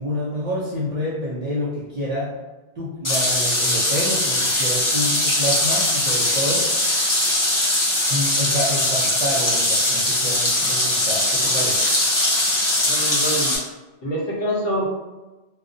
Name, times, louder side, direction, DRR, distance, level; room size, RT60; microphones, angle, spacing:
voice 1, 0.0-2.4 2.8-6.7 8.1-11.9, equal, 55° right, -8 dB, 0.4 m, -28 dB
sound 1, 3.0-13.6, left 1 dB, 30° left, 0.3 m, -21 dB
voice 2, 12.8-13.6 14.0-14.9, equal, 65° left, -4 dB, 0.9 m, -25 dB
2.4 x 2.1 x 2.5 m, 1.1 s
omnidirectional pair, 1.2 m